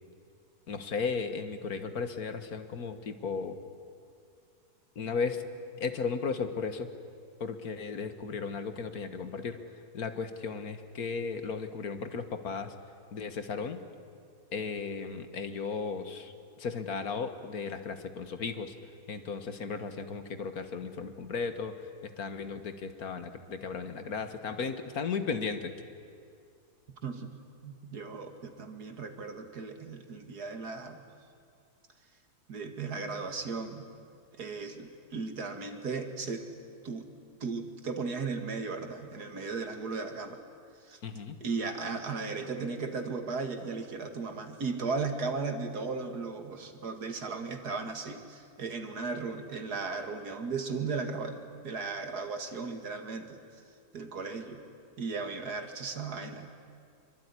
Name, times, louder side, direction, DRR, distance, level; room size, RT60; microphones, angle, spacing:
voice 1, 0.7-3.6 5.0-5.4 5.8-6.9 7.4-9.6 9.9-12.7 13.1-13.8 14.5-18.7 19.1-21.7 22.0-25.7 41.0-41.4, left 5 dB, 70° left, 9 dB, 2.0 m, -35 dB
voice 2, 27.6-31.1 32.5-33.9 34.4-36.4 36.8-37.1 37.4-40.4 40.8-41.0 41.4-53.4 53.9-54.6 55.0-56.5, right 4 dB, 85° right, 6 dB, 2.6 m, -36 dB
25.0 x 24.0 x 9.9 m, 2.3 s
omnidirectional pair, 1.6 m